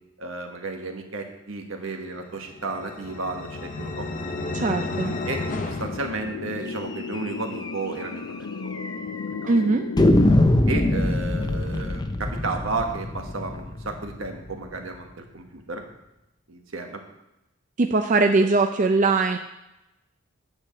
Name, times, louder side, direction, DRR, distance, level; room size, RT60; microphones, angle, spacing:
voice 1, 0.2-4.1 5.2-8.7 9.4-9.5 10.7-15.8 16.5-17.0, right 3 dB, 75° right, 3 dB, 1.4 m, -33 dB
sound 1, 2.4-6.9, left 2 dB, 40° left, 0.8 m, -33 dB
voice 2, 4.5-5.1 9.5-9.9 17.8-19.4, right 3 dB, 40° right, 5 dB, 0.5 m, -21 dB
sound 2, 4.6-10.1, left 4 dB, 85° left, 0.5 m, -36 dB
sound 3, 7.1-7.3 7.6-7.7 8.0-8.1 8.7-9.3 10.0-14.8, left 1 dB, 20° left, 0.5 m, -23 dB
9.6 x 4.7 x 7.0 m, 0.92 s
head